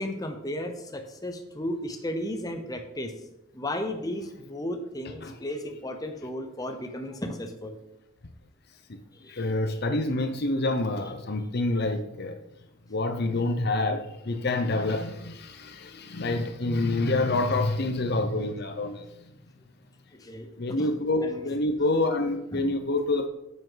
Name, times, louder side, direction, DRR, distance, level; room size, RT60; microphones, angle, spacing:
voice 1, 0.0-3.1 3.5-7.8 9.2-9.5 20.1-20.9 21.2-21.6 22.5-22.7, left 1 dB, 15° left, 6 dB, 0.7 m, -34 dB
voice 2, 9.3-12.4 12.9-19.1 20.6-23.3, left 2 dB, 50° left, 8 dB, 0.7 m, -27 dB
9.5 x 7.9 x 3.9 m, 0.87 s
head